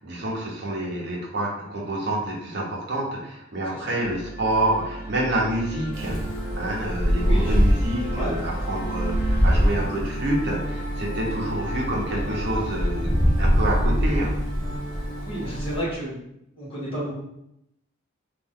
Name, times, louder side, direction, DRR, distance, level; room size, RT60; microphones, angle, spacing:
voice 1, 0.0-6.2 6.6-13.1 13.4-14.3, right 1 dB, 55° right, -3 dB, 0.9 m, -28 dB
voice 2, 3.6-3.9 7.2-7.6 8.0-8.8 15.2-16.2 16.6-17.1, equal, 25° left, -7 dB, 1.4 m, -32 dB
sound 1, 4.0-16.0, right 1 dB, 50° left, 1.1 m, -32 dB
Wind, 5.9-15.8, equal, 5° left, 0.9 m, -24 dB
3.1 x 2.6 x 3.7 m, 0.80 s
head